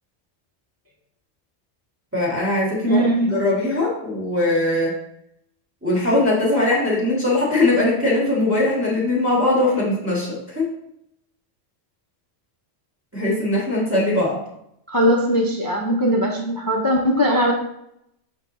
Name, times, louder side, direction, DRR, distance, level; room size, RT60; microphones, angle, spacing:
voice 1, 2.1-3.0 3.3-4.9 5.8-10.7 13.1-14.4, left 2 dB, 10° right, -6 dB, 1.6 m, -20 dB
voice 2, 2.8-3.4 14.9-17.5, equal, 30° left, 0 dB, 0.4 m, -19 dB
5.7 x 5.6 x 3.1 m, 0.78 s
omnidirectional pair, 1.4 m